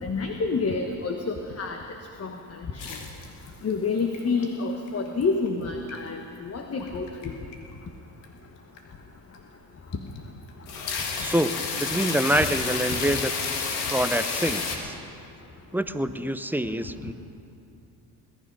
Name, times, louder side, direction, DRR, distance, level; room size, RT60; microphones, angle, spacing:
voice 1, 0.0-1.8 2.2-2.3 2.7-2.8 3.6-7.4, left 4 dB, 35° left, 4 dB, 1.2 m, -28 dB
sound 1, 2.8-3.7 4.0-4.4 4.9-5.5 5.9-6.0 6.8-7.3 7.5-7.7 8.2-8.3 8.8-8.9 9.3-9.4 9.9-10.2 10.5-14.8, left 5 dB, 80° left, 1.9 m, -30 dB
voice 2, 11.2-11.5 11.8-13.3 13.9-14.9 15.7-17.1, right 1 dB, 5° right, 11 dB, 0.6 m, -26 dB
21.0 x 11.0 x 5.4 m, 2.6 s
supercardioid pair, 65°, 43 cm